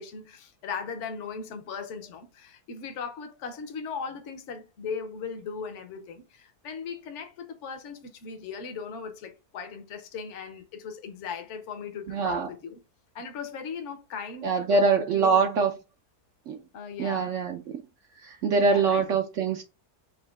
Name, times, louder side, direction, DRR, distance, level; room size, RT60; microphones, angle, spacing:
voice 1, 0.0-12.8 13.1-15.5 16.7-17.4 18.7-19.0, left 5 dB, 55° left, 1.0 m, -38 dB
voice 2, 12.1-12.5 14.4-15.7 16.5-16.6 17.0-17.8 18.2-19.6, right 4 dB, 65° right, 0.8 m, -24 dB
5.2 x 2.8 x 3.5 m
omnidirectional pair, 1.7 m